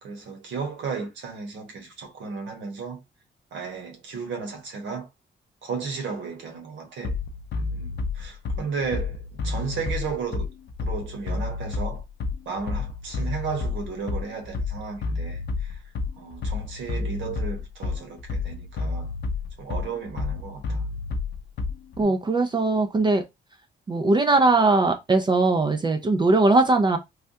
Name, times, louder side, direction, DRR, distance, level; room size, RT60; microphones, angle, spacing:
voice 1, 0.0-3.0 3.5-5.1 5.6-7.2 7.7-10.5 10.8-12.0 12.4-15.8 16.2-19.1 19.6-20.9 22.0-22.2, right 5 dB, 85° right, 1.1 m, -34 dB
Bass drum, 7.0-22.0, left 4 dB, 65° left, 0.5 m, -30 dB
voice 2, 22.0-23.2 23.9-27.0, right 3 dB, 25° right, 0.4 m, -20 dB
3.3 x 2.3 x 2.7 m
wide cardioid pair, 145°, 19 cm